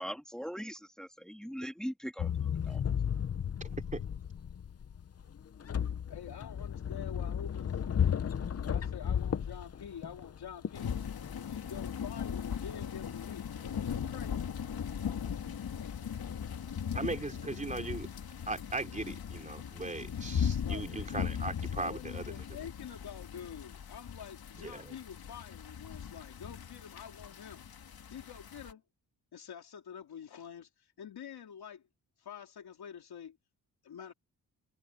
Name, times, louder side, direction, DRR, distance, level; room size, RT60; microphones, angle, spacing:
voice 1, 0.0-2.3 2.6-2.8, equal, ahead, 2.5 m, -40 dB
sound 1, 2.2-16.7, left 8 dB, 40° left, 0.7 m, -35 dB
voice 2, 6.1-7.7 8.6-10.9 11.5-13.5 13.9-14.5 15.1-16.0 20.6-20.9 21.7-27.7 28.1-28.8 29.3-31.9 32.2-33.4 33.8-34.1, left 8 dB, 90° left, 3.1 m, -47 dB
sound 2, 10.7-28.7, left 8 dB, 75° left, 2.5 m, -38 dB
voice 3, 16.9-18.1 18.5-22.3 24.6-24.9, right 3 dB, 20° right, 3.3 m, -38 dB
wide cardioid pair, 135°, 37 cm